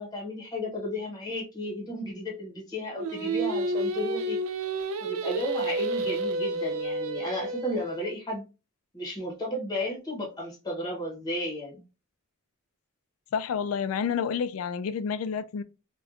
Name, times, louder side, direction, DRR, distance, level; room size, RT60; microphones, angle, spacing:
voice 1, 0.0-4.4 5.0-8.4 8.9-11.8, left 1 dB, 20° left, 0.8 m, -33 dB
Singing, 3.0-8.1, right 2 dB, 90° right, 0.5 m, -30 dB
voice 2, 13.3-15.6, left 6 dB, 85° left, 0.3 m, -29 dB
4.1 x 2.2 x 2.4 m
head